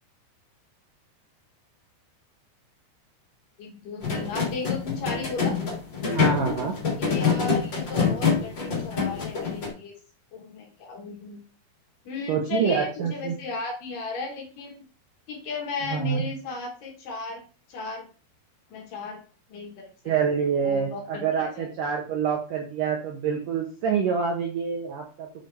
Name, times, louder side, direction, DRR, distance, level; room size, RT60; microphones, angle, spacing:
voice 1, 3.6-5.6 7.0-9.9 10.3-11.4 12.1-14.8 15.3-17.4 17.7-18.1 18.7-19.2 19.5-19.7 20.6-21.7, left 3 dB, 60° left, 1 dB, 2.7 m, -35 dB
sound 1, 4.0-9.7, left 5 dB, 30° left, 2.8 m, -26 dB
voice 2, 6.0-6.7 12.3-13.4 15.8-16.2 20.1-25.3, right 6 dB, 75° right, 1 dB, 2.0 m, -26 dB
8.0 x 6.5 x 3.4 m, 0.37 s
omnidirectional pair, 5.0 m